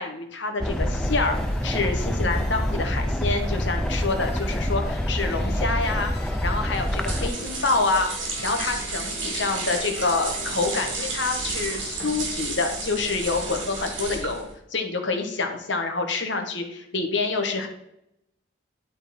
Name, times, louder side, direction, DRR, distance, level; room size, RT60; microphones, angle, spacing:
voice 1, 0.0-1.4 1.6-6.1 6.4-14.4 14.7-17.7, left 3 dB, 70° left, 5 dB, 1.3 m, -27 dB
sound 1, 0.6-7.3, equal, 5° left, 0.3 m, -26 dB
sound 2, 0.7-10.9, left 3 dB, 55° left, 1.2 m, -42 dB
sound 3, 6.7-14.5, right 3 dB, 85° right, 2.9 m, -32 dB
11.5 x 4.0 x 4.3 m, 0.80 s
head